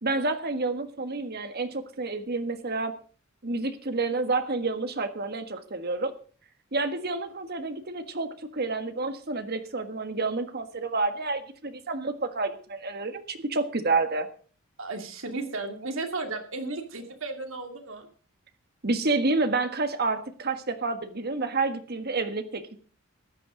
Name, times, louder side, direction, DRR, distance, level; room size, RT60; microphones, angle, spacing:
voice 1, 0.0-2.9 3.4-6.1 6.7-14.3 18.8-22.8, right 3 dB, 50° right, 8 dB, 1.5 m, -29 dB
voice 2, 14.8-18.1, right 3 dB, 70° right, 4 dB, 2.6 m, -34 dB
14.5 x 10.5 x 5.0 m, 0.41 s
head